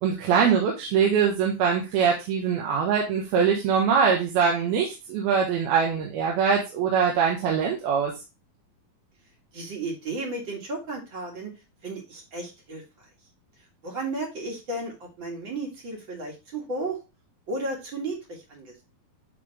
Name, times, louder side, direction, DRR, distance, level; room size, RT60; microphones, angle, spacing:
voice 1, 0.0-8.1, right 6 dB, 85° right, -1 dB, 3.0 m, -23 dB
voice 2, 9.5-11.5 11.8-12.8 13.8-17.0 17.5-18.7, right 2 dB, 40° right, 0 dB, 1.9 m, -34 dB
9.3 x 3.5 x 3.2 m, 0.27 s
omnidirectional pair, 4.3 m